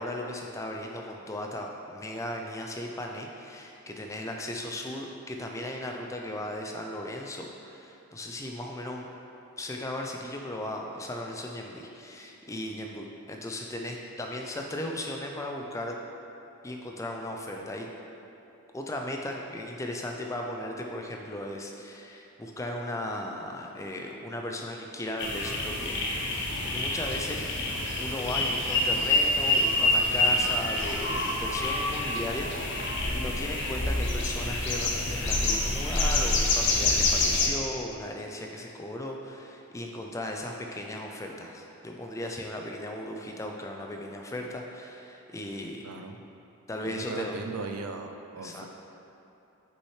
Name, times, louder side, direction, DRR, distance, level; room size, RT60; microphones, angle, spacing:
voice 1, 0.0-9.1 9.6-16.0 16.6-17.9 18.7-27.5 28.0-45.9 46.7-47.4 48.4-48.7, left 1 dB, 15° left, 1 dB, 0.3 m, -36 dB
sound 1, 25.2-37.5, left 2 dB, 50° left, 0.7 m, -27 dB
voice 2, 45.8-46.2 46.8-48.7, right 3 dB, 85° right, 6 dB, 0.5 m, -38 dB
6.4 x 5.5 x 3.2 m, 2.8 s
head